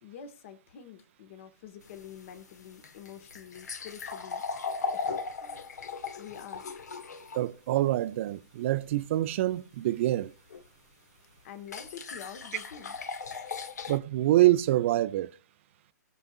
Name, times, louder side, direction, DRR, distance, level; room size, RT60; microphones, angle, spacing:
voice 1, 0.0-4.4 4.9-5.8 6.2-6.7 11.4-12.9, left 8 dB, 45° left, 1.5 m, -47 dB
sound 1, 1.8-7.4 10.5-10.6 11.7-14.0, left 5 dB, 65° left, 1.4 m, -37 dB
voice 2, 7.3-10.3 13.9-15.3, right 15 dB, 45° right, 0.6 m, -26 dB
20.0 x 6.8 x 2.4 m
figure-of-eight pair, 125°, 10 cm